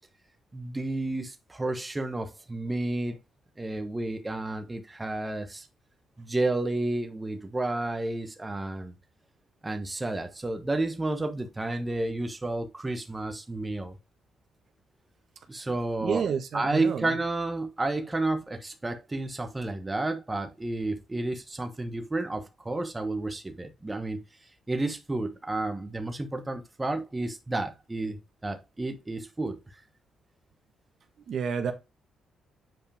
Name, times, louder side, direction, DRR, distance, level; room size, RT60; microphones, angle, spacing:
voice 1, 0.5-3.2 3.6-5.6 6.2-8.9 9.6-14.0 15.5-16.3 16.5-24.2 24.7-29.8, right 2 dB, 15° right, 1.1 m, -31 dB
voice 2, 16.0-17.1 31.3-31.7, right 6 dB, 60° right, 1.3 m, -29 dB
7.6 x 4.9 x 3.5 m
cardioid pair, 90°, 0 cm